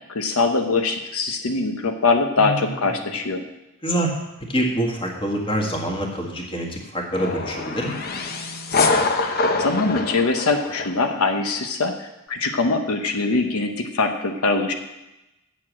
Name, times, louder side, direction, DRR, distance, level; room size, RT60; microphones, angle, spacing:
voice 1, 0.1-3.4 9.2-14.7, left 3 dB, 90° left, 5 dB, 1.0 m, -23 dB
voice 2, 2.4-3.1 3.8-4.1 4.5-8.0, equal, 25° left, 0 dB, 1.7 m, -26 dB
sound 1, 7.1-11.2, left 3 dB, 45° left, 0.8 m, -24 dB
8.2 x 7.3 x 7.4 m, 0.95 s
head